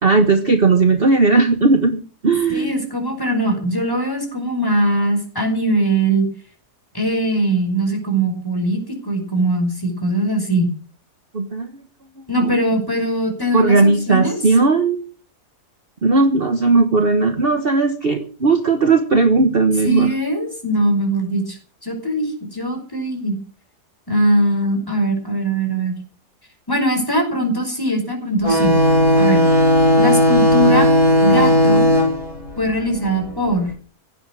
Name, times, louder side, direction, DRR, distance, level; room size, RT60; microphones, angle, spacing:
voice 1, 0.0-2.7 11.3-11.7 12.4-12.6 13.5-15.0 16.0-20.1, right 3 dB, 35° right, 7 dB, 1.5 m, -16 dB
voice 2, 2.5-6.3 6.9-10.7 12.3-14.4 19.8-21.6 21.8-23.4 24.1-25.9 26.7-28.7 29.2-29.4 30.0-30.9 31.2-31.9 32.6-33.7, right 1 dB, 15° left, 3 dB, 5.4 m, -21 dB
sound 1, 28.4-33.6, equal, 20° right, 5.2 m, -15 dB
16.5 x 11.5 x 6.3 m, 0.40 s
omnidirectional pair, 1.7 m